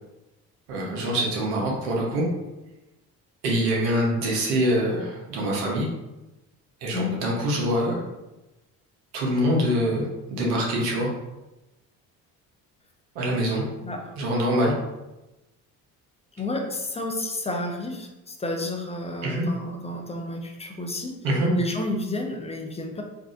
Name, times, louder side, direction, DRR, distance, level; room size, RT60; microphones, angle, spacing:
voice 1, 0.7-2.2 3.4-5.9 6.8-8.0 9.1-11.1 13.1-13.6 14.2-14.7 19.2-19.4 21.2-21.5, equal, 85° right, -2 dB, 0.9 m, -24 dB
voice 2, 13.8-14.1 16.4-21.2 21.5-23.0, left 2 dB, 15° left, 3 dB, 0.5 m, -31 dB
3.5 x 2.4 x 2.4 m, 1.0 s
hypercardioid pair, 55°, 44 cm